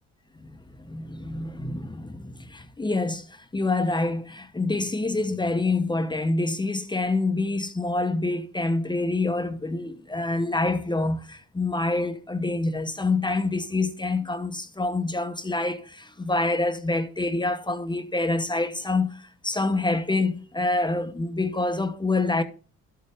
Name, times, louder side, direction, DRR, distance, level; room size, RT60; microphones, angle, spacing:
voice 1, 0.8-22.4, left 2 dB, 15° left, 0.9 m, -26 dB
12.0 x 6.7 x 3.4 m
cardioid pair, 90°, 30 cm